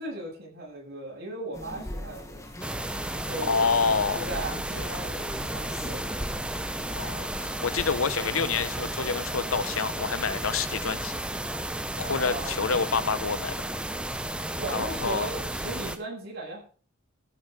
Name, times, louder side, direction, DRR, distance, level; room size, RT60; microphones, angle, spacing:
voice 1, 0.0-2.4 3.1-3.6 4.1-6.1 12.0-12.6 14.6-16.6, right 2 dB, 50° right, 7.7 m, -37 dB
sound 1, 1.5-7.3, left 1 dB, 15° left, 1.8 m, -41 dB
sound 2, 2.6-16.0, right 1 dB, 5° right, 0.8 m, -33 dB
voice 2, 3.4-4.2 4.8-5.0 7.0-11.2 12.0-13.5 14.7-15.3, left 5 dB, 85° left, 0.9 m, -28 dB
14.0 x 8.7 x 5.7 m
head